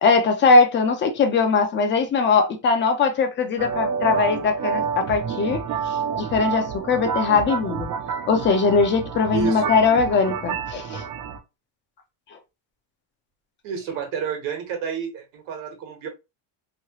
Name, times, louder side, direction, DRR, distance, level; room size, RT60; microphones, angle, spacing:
voice 1, 0.0-5.6 6.2-7.9 8.3-11.0, left 4 dB, 25° left, 0.4 m, -20 dB
sound 1, 3.6-11.4, right 7 dB, 40° right, 0.4 m, -29 dB
voice 2, 9.3-9.8 13.6-16.1, right 7 dB, 75° right, 1.2 m, -30 dB
3.1 x 2.3 x 2.8 m
cardioid pair, 165°, 48 cm